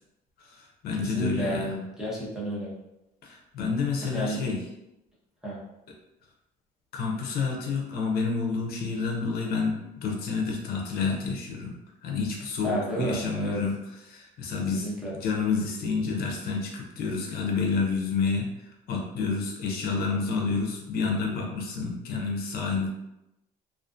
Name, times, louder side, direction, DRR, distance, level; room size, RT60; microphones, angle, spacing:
voice 1, 0.4-1.7 3.2-4.6 6.9-11.7 12.0-13.7 14.0-14.9 15.1-22.9, left 4 dB, 65° left, 0 dB, 0.5 m, -29 dB
voice 2, 1.0-2.7 4.0-4.4 5.4-5.6 12.6-13.6 14.7-15.1, right 1 dB, 5° right, -7 dB, 1.0 m, -31 dB
2.4 x 2.4 x 2.4 m, 0.90 s
cardioid pair, 110°, 17 cm